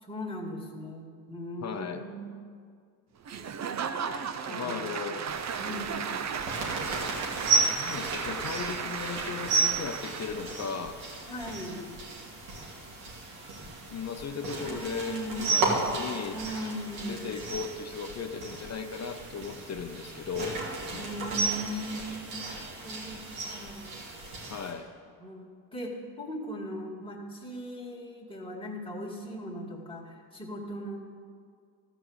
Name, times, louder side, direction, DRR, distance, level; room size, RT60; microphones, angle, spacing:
voice 1, 0.0-2.4 4.1-5.3 5.6-6.1 11.3-11.9 14.7-15.8 16.3-17.3 21.0-22.4 22.8-23.2 23.5-24.0 25.2-31.0, equal, 10° left, -2 dB, 2.3 m, -39 dB
voice 2, 1.6-2.0 4.5-5.2 7.7-11.0 13.9-16.4 17.1-20.6 20.9-21.0 21.7-21.8 24.5-24.9, left 6 dB, 30° left, 7 dB, 0.8 m, -36 dB
Applause / Crowd, 3.2-10.6, right 7 dB, 35° right, 0.7 m, -35 dB
sound 1, 5.3-24.7, right 3 dB, 90° right, 2.7 m, -34 dB
13.0 x 5.1 x 8.1 m, 2.1 s
supercardioid pair, 70°, 50 cm